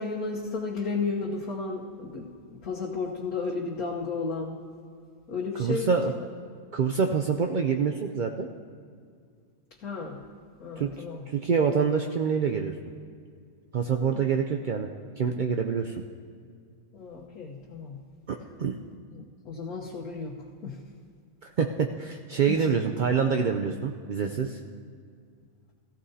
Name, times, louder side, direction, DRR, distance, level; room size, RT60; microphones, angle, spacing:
voice 1, 0.0-4.6 5.3-6.0 9.8-10.2 10.6-11.3 13.9-14.3 16.9-18.0 19.2-20.4 20.6-20.8 22.5-22.7, left 4 dB, 90° left, -3 dB, 1.6 m, -33 dB
voice 2, 5.6-6.1 6.7-8.5 10.8-12.7 13.7-14.9 15.2-15.9 18.3-18.8 21.4-24.6, right 6 dB, 75° right, 4 dB, 0.4 m, -26 dB
18.5 x 15.0 x 2.8 m, 2.1 s
omnidirectional pair, 1.5 m